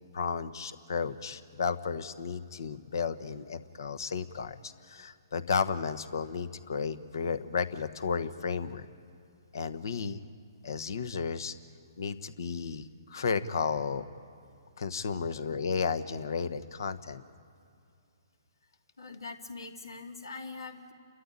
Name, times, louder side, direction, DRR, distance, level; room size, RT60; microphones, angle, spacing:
voice 1, 0.1-8.9 9.5-10.2 10.6-11.5 12.0-12.8 13.1-14.0 14.8-17.2, left 5 dB, 65° left, 12 dB, 1.2 m, -33 dB
voice 2, 19.0-20.9, left 3 dB, 80° left, 4 dB, 2.6 m, -43 dB
29.5 x 13.5 x 9.9 m, 2.5 s
hypercardioid pair, 135°, 2 cm